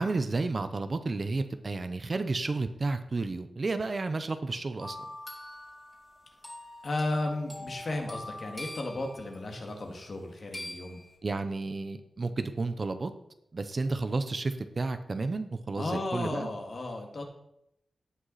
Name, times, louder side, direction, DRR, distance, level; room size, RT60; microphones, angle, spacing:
voice 1, 0.0-5.0 11.2-13.1 13.5-16.5, right 3 dB, 40° right, 9 dB, 0.8 m, -31 dB
sound 1, 4.8-9.6 10.5-11.1, left 1 dB, 10° left, 3.1 m, -43 dB
voice 2, 6.8-11.0 15.8-17.2, left 2 dB, 50° left, 2 dB, 2.1 m, -34 dB
17.0 x 6.0 x 4.1 m, 0.79 s
wide cardioid pair, 120°, 0 cm